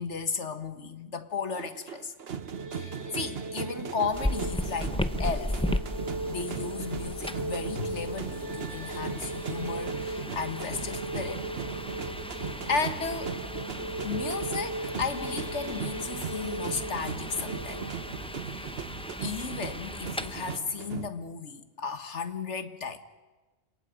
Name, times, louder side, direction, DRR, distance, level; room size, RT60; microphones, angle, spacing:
voice 1, 0.0-2.1 2.7-5.6 6.3-11.4 11.8-11.9 12.3-13.4 14.0-17.8 18.5-18.8 19.2-23.0, left 5 dB, 85° left, 9 dB, 1.7 m, -34 dB
sound 1, 1.5-21.1, right 7 dB, 60° right, 1.2 m, -39 dB
sound 2, 2.2-19.4, right 2 dB, 85° right, 2.3 m, -39 dB
sound 3, 4.1-20.6, left 1 dB, 5° left, 0.5 m, -37 dB
30.0 x 27.0 x 5.2 m, 1.2 s
omnidirectional pair, 1.2 m